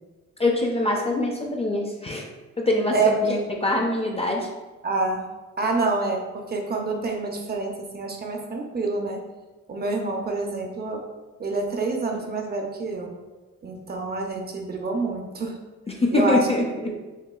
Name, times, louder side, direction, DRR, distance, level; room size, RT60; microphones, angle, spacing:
voice 1, 0.4-2.3 2.6-4.5 15.9-16.9, left 2 dB, 20° left, 0 dB, 0.4 m, -24 dB
voice 2, 2.9-3.4 4.8-5.3 5.6-9.2 9.7-11.0 11.4-13.1 13.6-15.6 16.1-16.5 16.8-17.0, right 3 dB, 30° right, 2 dB, 0.6 m, -27 dB
6.3 x 2.2 x 2.2 m, 1.2 s
cardioid pair, 90°, 30 cm